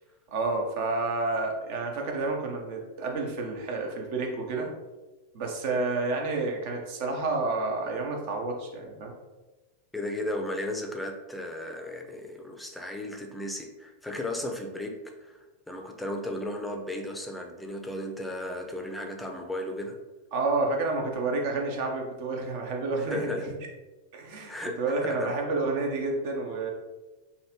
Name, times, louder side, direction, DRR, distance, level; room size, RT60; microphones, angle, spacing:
voice 1, 0.3-4.7 5.3-9.1 20.3-23.5 24.1-26.7, right 3 dB, 50° right, 1 dB, 0.8 m, -30 dB
voice 2, 9.9-14.9 15.2-20.0 23.1-23.5 24.5-24.8 25.0-25.3, left 1 dB, 5° left, 2 dB, 0.6 m, -35 dB
5.3 x 2.5 x 2.9 m, 1.2 s
figure-of-eight pair, 90°, 0 cm